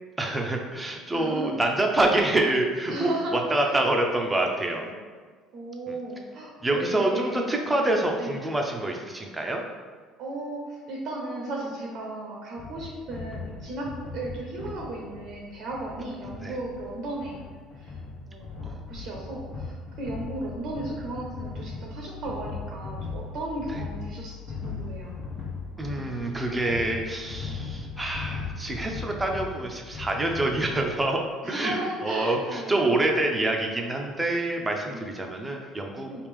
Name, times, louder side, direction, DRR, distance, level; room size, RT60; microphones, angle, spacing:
voice 1, 0.2-4.9 5.9-6.0 6.6-9.6 16.4-16.5 18.6-18.8 23.7-23.8 25.8-31.2 31.5-31.8 32.0-36.3, right 2 dB, 15° right, 2 dB, 0.5 m, -26 dB
voice 2, 1.1-1.5 2.9-3.4 3.6-3.8 4.8-5.0 5.5-8.5 10.2-18.0 18.3-25.2 31.4-32.8 34.9-35.1 36.1-36.3, right 2 dB, 60° right, -1 dB, 0.6 m, -35 dB
sound 1, 12.6-30.9, left 4 dB, 55° left, 1.0 m, -38 dB
3.4 x 2.4 x 3.4 m, 1.5 s
hypercardioid pair, 70°, 0 cm